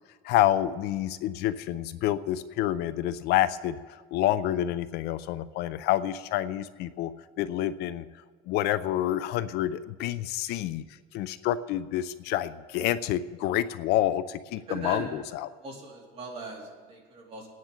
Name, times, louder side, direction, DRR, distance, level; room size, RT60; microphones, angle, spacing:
voice 1, 0.2-7.1 7.4-8.1 8.5-10.8 11.1-15.5, left 12 dB, 70° left, 14 dB, 0.5 m, -28 dB
voice 2, 14.6-15.2 15.6-17.5, right 3 dB, 35° right, -3 dB, 2.9 m, -39 dB
23.0 x 9.5 x 3.8 m, 1.5 s
cardioid pair, 155°, 18 cm